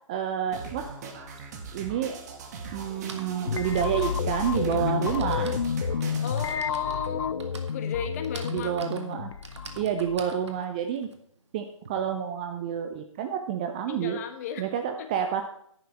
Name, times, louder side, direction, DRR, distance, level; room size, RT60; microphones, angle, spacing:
voice 1, 0.1-0.9 1.7-2.2 2.7-5.6 8.5-9.3 9.8-11.1 11.5-14.2 14.6-15.4, right 8 dB, 15° right, 6 dB, 0.4 m, -29 dB
sound 1, 0.5-6.5, right 4 dB, 30° right, 1.5 m, -39 dB
Typing, 1.7-1.8 2.8-11.9, right 4 dB, 55° right, 1.6 m, -47 dB
sound 2, 3.5-10.4, left 7 dB, 55° left, 0.4 m, -31 dB
voice 2, 6.2-7.4 7.7-8.7 13.9-14.7 15.0-15.1, left 7 dB, 30° left, 7 dB, 1.3 m, -34 dB
10.5 x 10.0 x 4.4 m, 0.69 s
figure-of-eight pair, 145°, 17 cm